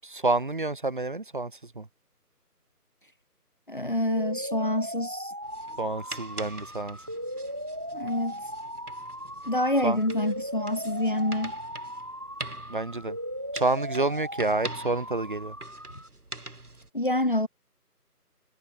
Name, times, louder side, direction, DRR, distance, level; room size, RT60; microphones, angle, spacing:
voice 1, 0.0-1.9 5.8-7.0 9.8-10.0 12.7-13.2 13.5-15.6, right 2 dB, 30° right, 3.3 m, -28 dB
voice 2, 3.7-5.3 7.9-8.4 9.5-11.5 16.9-17.5, left 1 dB, 30° left, 1.6 m, -27 dB
sound 1, 4.1-16.1, equal, 10° right, 1.9 m, -38 dB
sound 2, 5.4-16.9, right 2 dB, 65° right, 4.6 m, -44 dB
figure-of-eight pair, 170°, 48 cm